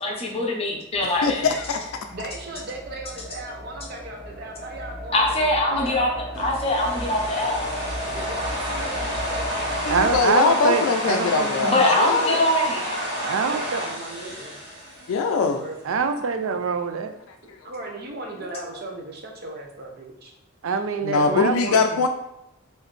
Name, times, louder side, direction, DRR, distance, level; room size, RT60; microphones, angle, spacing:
voice 1, 0.0-1.5 5.1-6.1 6.4-7.8 11.6-12.8, left 1 dB, 30° left, -1 dB, 0.6 m, -23 dB
sound 1, 0.9-10.2, left 1 dB, 5° right, 0.9 m, -35 dB
voice 2, 1.2-2.0 9.9-12.4 15.1-15.6 21.0-22.1, left 4 dB, 85° left, 4 dB, 0.4 m, -22 dB
voice 3, 2.1-6.1 8.1-9.9 12.3-12.5 12.9-14.6 15.4-16.0 17.6-20.3 21.9-22.0, right 2 dB, 50° right, 1 dB, 0.7 m, -37 dB
sound 2, 6.3-15.6, equal, 20° right, 1.3 m, -30 dB
voice 4, 9.9-11.8 13.2-13.8 15.8-17.1 20.6-21.8, right 5 dB, 75° right, 8 dB, 0.4 m, -25 dB
3.9 x 2.6 x 3.1 m, 0.85 s
head